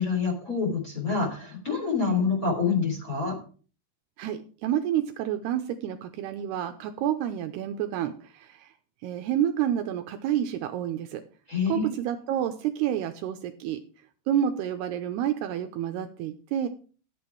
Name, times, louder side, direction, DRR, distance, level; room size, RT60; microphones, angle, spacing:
voice 1, 0.0-3.3 11.5-11.8, left 5 dB, 20° left, 0 dB, 3.5 m, -26 dB
voice 2, 4.2-8.7 9.0-11.2 11.7-13.8 14.3-16.7, right 10 dB, 80° right, 7 dB, 2.6 m, -29 dB
13.5 x 8.2 x 4.6 m, 0.39 s
omnidirectional pair, 5.1 m